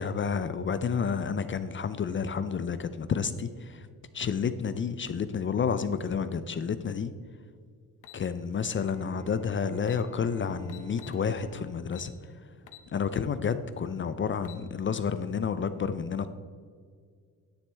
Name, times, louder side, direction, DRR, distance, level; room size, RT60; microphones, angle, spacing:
voice 1, 0.0-3.8 4.1-7.1 8.1-12.1 12.9-16.3, left 6 dB, 35° left, 12 dB, 0.5 m, -30 dB
sound 1, 8.0-8.2 9.4-9.5 9.8-10.0 10.7-11.2 11.9-12.1 12.7-12.9 13.3-13.4 14.2-14.6, left 11 dB, 60° left, 0.9 m, -48 dB
Bowed string instrument, 8.7-13.6, right 3 dB, 20° right, 1.0 m, -51 dB
10.0 x 9.3 x 3.4 m, 2.1 s
cardioid pair, 110°, 34 cm